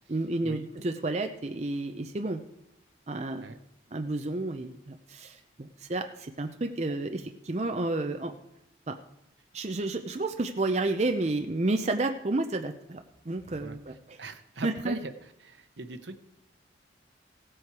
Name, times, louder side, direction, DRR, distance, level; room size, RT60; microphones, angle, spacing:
voice 1, 0.1-2.4 3.1-3.5 3.9-8.3 8.9-9.0 9.5-14.2 14.6-15.0, right 2 dB, 35° right, 6 dB, 0.6 m, -31 dB
voice 2, 13.6-15.1 15.4-16.2, right 3 dB, 75° right, 9 dB, 0.9 m, -41 dB
16.0 x 7.7 x 4.7 m, 0.81 s
head